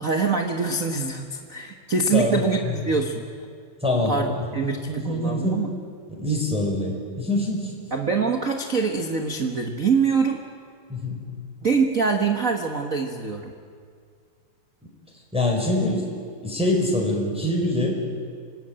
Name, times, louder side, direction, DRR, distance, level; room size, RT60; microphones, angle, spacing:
voice 1, 0.0-3.5 4.1-5.7 7.9-10.4 11.6-13.5, right 4 dB, 60° right, 3 dB, 0.8 m, -24 dB
voice 2, 2.1-2.4 3.8-4.2 4.7-5.6 6.1-7.7 10.9-11.2 15.3-16.0 16.4-18.0, left 1 dB, ahead, -1 dB, 4.5 m, -24 dB
26.5 x 19.0 x 8.9 m, 2.1 s
omnidirectional pair, 3.7 m